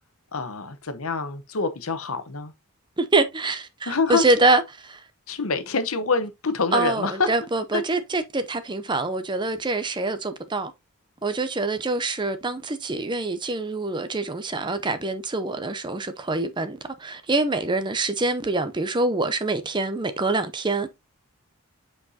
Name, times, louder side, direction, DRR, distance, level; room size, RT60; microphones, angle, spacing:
voice 1, 0.3-2.5 3.9-4.2 5.3-7.3 7.7-7.8, left 4 dB, 70° left, 1.0 m, -26 dB
voice 2, 3.0-5.0 6.7-10.7 11.2-20.9, right 2 dB, 20° right, 0.6 m, -25 dB
8.1 x 4.7 x 2.7 m
head